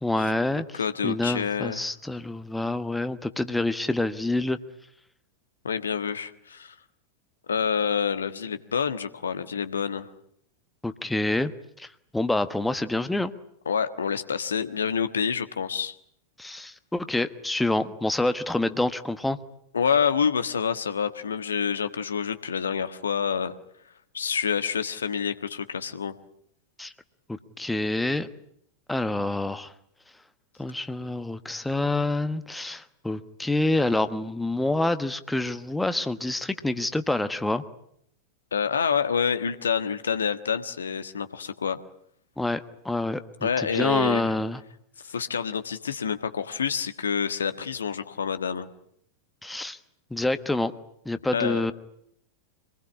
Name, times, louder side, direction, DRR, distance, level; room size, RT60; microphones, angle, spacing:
voice 1, 0.0-4.6 10.8-11.5 11.8-13.3 16.4-19.4 26.8-26.9 27.3-28.3 28.9-29.7 30.6-37.6 42.4-44.6 49.4-49.8 50.1-50.7 51.0-51.7, left 2 dB, 5° left, 11 dB, 1.2 m, -27 dB
voice 2, 0.7-1.8 5.6-6.7 7.5-10.1 13.6-15.9 19.7-23.5 24.1-26.1 38.5-41.8 43.4-44.4 45.0-48.7 51.3-51.7, left 6 dB, 70° left, 10 dB, 1.4 m, -27 dB
26.0 x 20.5 x 9.8 m, 0.72 s
figure-of-eight pair, 90°, 0 cm